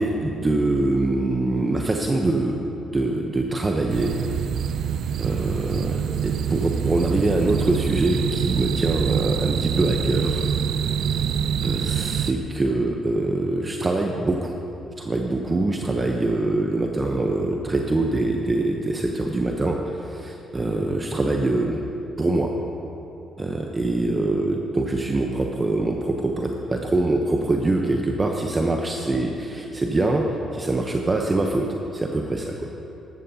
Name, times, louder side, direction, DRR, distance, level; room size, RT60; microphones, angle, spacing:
voice 1, 0.0-2.6 2.9-4.1 5.2-6.0 6.2-10.4 11.6-14.5 15.0-19.8 20.1-21.8 22.2-22.5 23.4-31.7 31.9-32.9, right 2 dB, 25° right, 1 dB, 0.8 m, -24 dB
sound 1, 3.9-12.3, right 8 dB, 70° right, 0.4 m, -25 dB
13.5 x 12.5 x 2.8 m, 2.9 s
cardioid pair, 80°, 0 cm